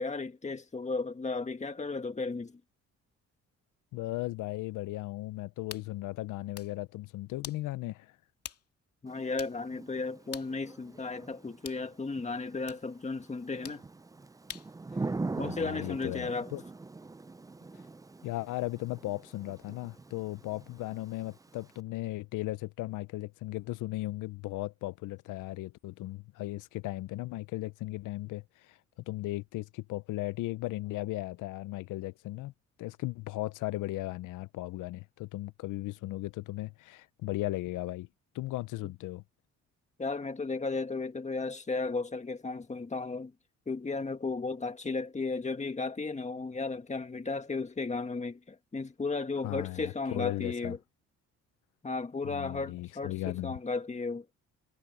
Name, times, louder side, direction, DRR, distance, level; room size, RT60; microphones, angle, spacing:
voice 1, 0.0-2.6 9.0-13.8 15.4-16.5 40.0-43.3 43.7-50.8 51.8-54.3, left 3 dB, 25° left, 1.9 m, -34 dB
voice 2, 3.9-8.2 14.9-15.1 15.4-16.6 18.2-28.8 29.1-32.5 32.8-38.1 38.3-39.2 49.4-50.8 52.2-53.6, left 18 dB, 85° left, 0.6 m, -36 dB
sound 1, 5.7-5.9 6.4-6.8 7.4-7.6 8.4-8.7 8.9-9.0 9.4-9.6 10.3-10.5 11.6-11.9 12.7-12.8 13.6-13.8 14.5-14.7, left 8 dB, 50° left, 2.4 m, -44 dB
Thunder / Rain, 9.1-21.8, right 3 dB, 10° right, 0.5 m, -43 dB
cardioid pair, 90°, 30 cm